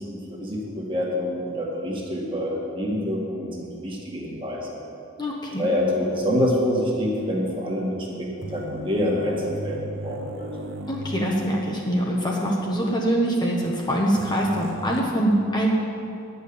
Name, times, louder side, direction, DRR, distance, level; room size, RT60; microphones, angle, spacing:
voice 1, 0.0-4.8 5.6-10.5, equal, 25° right, -3 dB, 1.8 m, -26 dB
voice 2, 5.2-5.7 10.9-15.7, right 1 dB, 20° left, -2 dB, 1.0 m, -24 dB
sound 1, 8.4-12.2 12.4-12.5 14.2-15.0, right 1 dB, 70° right, 0.8 m, -37 dB
11.0 x 5.6 x 8.6 m, 2.6 s
head